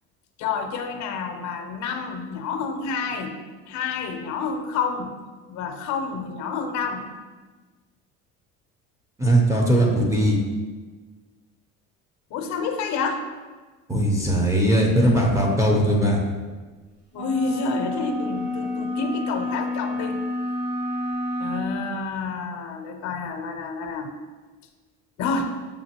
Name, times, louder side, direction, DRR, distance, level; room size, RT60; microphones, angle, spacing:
voice 1, 0.4-3.4 3.7-5.1 5.5-7.1 12.3-13.2 17.1-20.3 21.4-24.1 25.2-25.5, left 5 dB, 55° left, 5 dB, 0.6 m, -29 dB
voice 2, 9.2-10.4 13.9-16.2, right 1 dB, 10° right, -2 dB, 0.7 m, -19 dB
sound 1, 17.1-21.7, left 1 dB, 25° right, 1.1 m, -29 dB
6.7 x 2.5 x 2.9 m, 1.4 s
cardioid pair, 110°, 33 cm